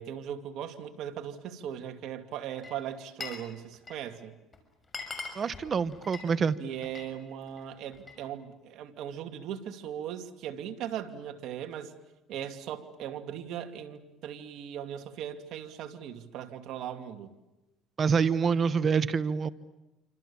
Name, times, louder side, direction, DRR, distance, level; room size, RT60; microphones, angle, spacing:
voice 1, 0.0-4.3 6.6-11.9 12.3-17.3, right 9 dB, 65° right, 6 dB, 2.6 m, -39 dB
Glass, 2.5-3.5 3.7-4.2 4.5-4.6 4.8-7.1 7.5-8.2, left 4 dB, 25° left, 6.4 m, -42 dB
voice 2, 5.3-6.6 18.0-19.5, right 6 dB, 35° right, 14 dB, 1.1 m, -26 dB
28.5 x 26.0 x 7.3 m, 0.97 s
cardioid pair, 105°, 0 cm